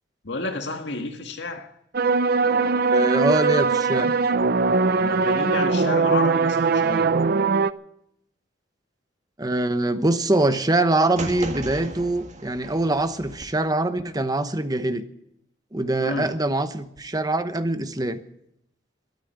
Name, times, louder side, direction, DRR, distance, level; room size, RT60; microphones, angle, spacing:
voice 1, 0.2-1.7 5.0-7.0 16.0-16.3, left 2 dB, 90° left, 1.8 m, -30 dB
sound 1, 1.9-7.7, right 4 dB, 60° right, 0.6 m, -21 dB
voice 2, 2.9-4.1 9.4-15.0 15.7-18.2, right 2 dB, 20° right, 1.0 m, -23 dB
sound 2, 11.2-13.4, right 2 dB, 45° right, 1.8 m, -36 dB
13.0 x 12.5 x 8.0 m
head